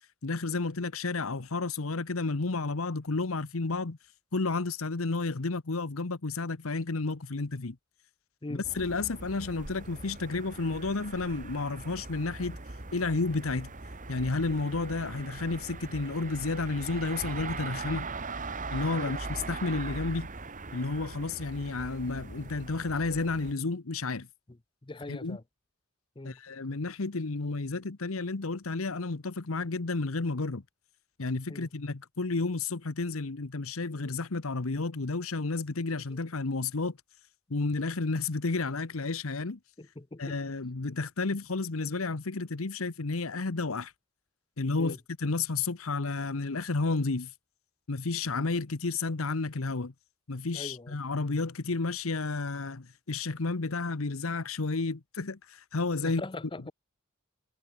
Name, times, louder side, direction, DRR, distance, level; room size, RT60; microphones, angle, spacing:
voice 1, 0.2-4.0 4.3-7.8 8.5-12.6 12.9-13.7 14.1-18.1 18.7-20.3 20.7-24.3 25.1-25.4 26.2-30.6 31.2-37.0 37.5-39.6 40.2-43.9 44.6-47.3 47.9-49.9 50.3-56.2, left 3 dB, 85° left, 1.1 m, -31 dB
sound 1, 8.6-23.5, right 3 dB, 40° right, 2.0 m, -41 dB
voice 2, 24.8-25.4 26.2-26.4 31.5-31.7 36.1-36.2 39.8-40.4 44.8-45.0 50.5-50.9 56.0-56.7, left 2 dB, 25° left, 0.7 m, -41 dB
head